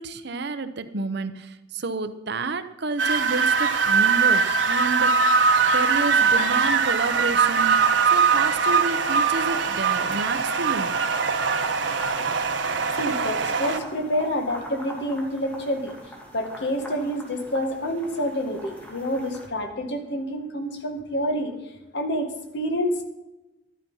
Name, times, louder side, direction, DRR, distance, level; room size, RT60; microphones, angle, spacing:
voice 1, 0.0-5.1 5.7-7.8 8.1-10.9, right 3 dB, 65° right, 10 dB, 0.9 m, -30 dB
sound 1, 3.0-13.8, right 5 dB, 90° right, 1.2 m, -21 dB
sound 2, 5.2-19.5, equal, 10° left, 2.8 m, -44 dB
voice 2, 13.0-15.9 16.3-21.6 21.9-23.0, equal, 65° left, 5 dB, 2.0 m, -28 dB
12.0 x 11.5 x 5.6 m, 0.98 s
head